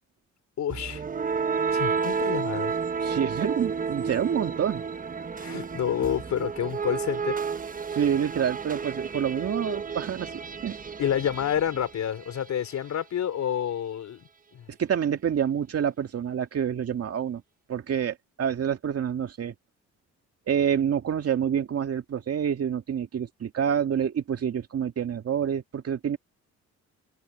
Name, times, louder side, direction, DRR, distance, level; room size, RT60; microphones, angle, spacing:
voice 1, 0.6-1.0 1.7-2.8 5.4-7.4 11.0-14.2 14.5-14.7, left 9 dB, 65° left, 3.7 m, -29 dB
sound 1, 0.7-12.6, right 5 dB, 30° right, 1.0 m, -31 dB
voice 2, 3.0-4.8 7.9-10.3 10.6-10.8 14.7-17.4 17.7-19.5 20.5-26.2, right 8 dB, 55° right, 2.2 m, -27 dB
cardioid pair, 90°, 30 cm